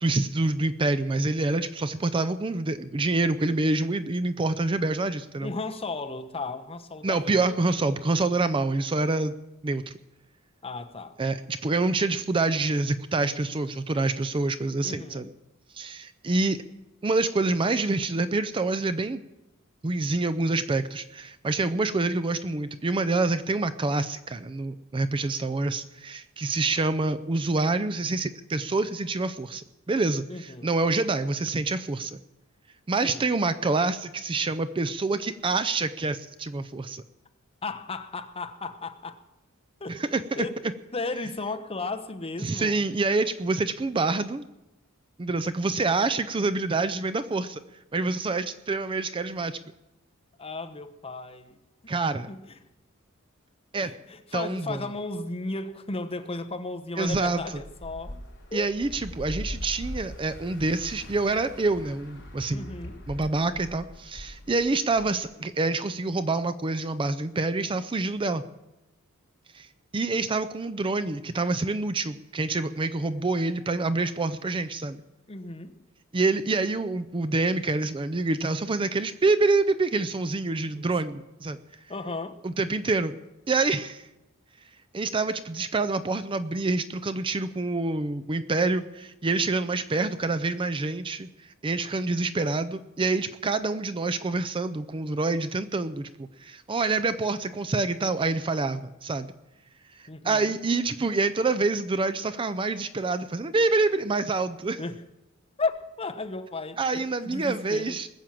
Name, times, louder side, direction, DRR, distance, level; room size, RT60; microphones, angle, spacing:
voice 1, 0.0-5.5 7.0-9.3 9.6-9.9 11.2-15.3 15.7-16.6 17.0-19.2 19.8-32.2 32.9-37.0 39.9-40.5 42.4-44.4 45.2-47.6 47.9-49.6 51.9-52.3 53.7-53.9 54.3-54.8 57.0-57.4 58.5-62.7 63.1-68.4 69.5-69.7 69.9-75.0 76.1-81.6 82.4-83.2 83.5-84.1 84.9-91.3 91.6-99.3 100.0-104.8 106.8-108.1, right 3 dB, 25° right, 12 dB, 0.5 m, -27 dB
voice 2, 5.4-7.6 10.6-11.2 14.8-15.3 30.3-30.7 33.0-33.3 37.6-39.2 39.8-40.0 40.4-40.6 40.9-42.9 50.4-51.6 51.8-52.6 53.8-58.2 58.5-58.7 62.5-63.0 75.3-75.8 80.7-80.9 81.9-82.4 100.1-100.5 104.8-105.0 105.6-108.0, left 3 dB, 25° left, 6 dB, 1.0 m, -35 dB
sound 1, 57.0-65.4, equal, 55° left, 4.1 m, -41 dB
20.5 x 7.3 x 7.6 m, 0.95 s
head